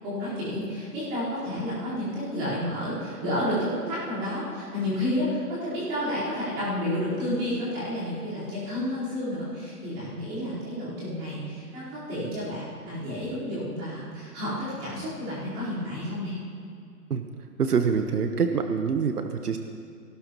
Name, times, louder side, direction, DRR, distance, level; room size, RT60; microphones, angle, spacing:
voice 1, 0.0-16.4, left 1 dB, 15° right, -12 dB, 4.5 m, -30 dB
voice 2, 17.6-19.6, right 6 dB, 70° right, 6 dB, 1.2 m, -25 dB
20.0 x 18.0 x 3.1 m, 2.4 s
hypercardioid pair, 180°, 47 cm